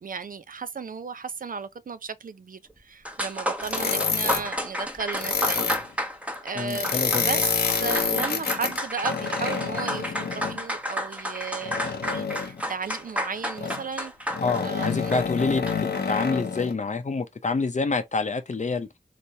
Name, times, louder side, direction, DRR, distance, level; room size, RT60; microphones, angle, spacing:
voice 1, 0.0-5.7 6.4-14.3 14.6-15.2, right 5 dB, 60° right, 0.5 m, -35 dB
sound 1, 2.8-2.9 3.1-16.0, equal, 10° right, 0.9 m, -32 dB
sound 2, 3.6-4.5 5.1-5.8 6.7-10.6 11.6-12.6 13.6-13.8 14.3-16.7, left 5 dB, 85° left, 0.7 m, -28 dB
voice 2, 6.6-7.2 14.4-18.9, left 4 dB, 45° left, 0.6 m, -27 dB
3.3 x 3.0 x 2.7 m
cardioid pair, 45°, 16 cm